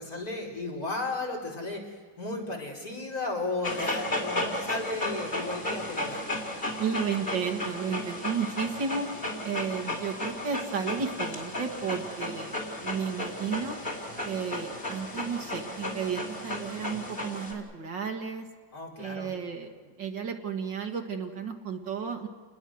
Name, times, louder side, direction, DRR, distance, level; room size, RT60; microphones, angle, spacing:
voice 1, 0.0-6.2 18.7-19.3, left 2 dB, 45° left, -2 dB, 5.4 m, -34 dB
Dog, 3.6-17.5, left 1 dB, 25° left, 4.3 m, -34 dB
voice 2, 6.8-9.1 9.4-13.8 14.2-18.5 19.0-22.3, right 6 dB, 65° right, 4 dB, 2.5 m, -33 dB
29.5 x 21.0 x 6.4 m, 1.5 s
omnidirectional pair, 2.1 m